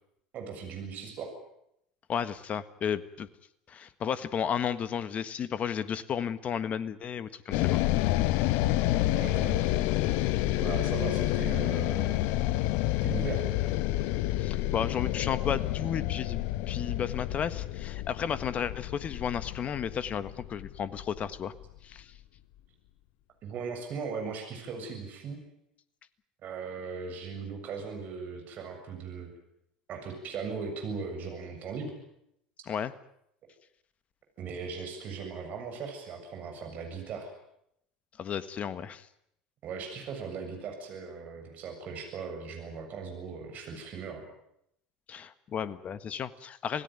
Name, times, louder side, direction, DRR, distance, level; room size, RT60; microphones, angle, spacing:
voice 1, 0.3-1.4 9.1-9.6 10.6-12.3 13.0-13.5 23.4-25.4 26.4-29.3 29.9-31.9 34.4-37.3 39.6-44.2, right 5 dB, 45° right, 4 dB, 7.2 m, -38 dB
voice 2, 2.1-3.3 3.7-7.8 14.4-21.5 21.8-22.1 32.7-32.9 38.2-39.1 45.1-46.8, left 8 dB, 35° left, 14 dB, 1.5 m, -33 dB
sound 1, 7.5-21.8, left 15 dB, 60° left, 1.0 m, -29 dB
27.0 x 17.5 x 9.4 m, 0.76 s
figure-of-eight pair, 75°, 4 cm